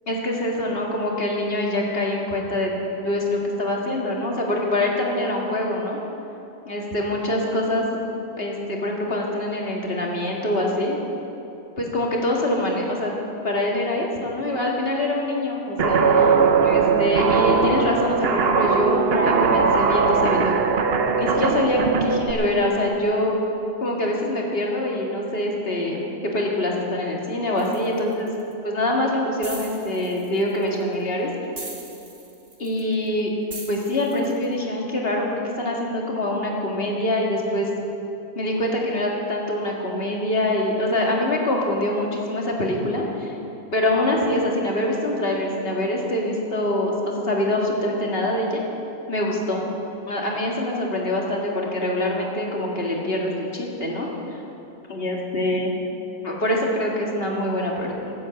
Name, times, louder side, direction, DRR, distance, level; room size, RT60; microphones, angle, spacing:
voice 1, 0.1-2.7 3.0-6.0 6.7-7.8 8.4-11.0 11.8-13.1 13.4-20.6 21.2-23.3 23.8-26.0 26.3-28.3 28.6-31.3 32.6-33.3 33.7-37.7 38.4-43.3 43.7-48.6 49.1-49.6 50.1-54.4 54.9-55.7 56.2-58.1, left 1 dB, 40° left, -2 dB, 2.2 m, -24 dB
Guitar, 15.8-22.3, right 5 dB, 50° right, 0.8 m, -20 dB
sound 1, 27.6-28.5 29.4-30.8 31.6-33.1 33.5-34.4, right 2 dB, 25° right, 1.5 m, -40 dB
14.0 x 8.5 x 8.2 m, 2.9 s
omnidirectional pair, 1.6 m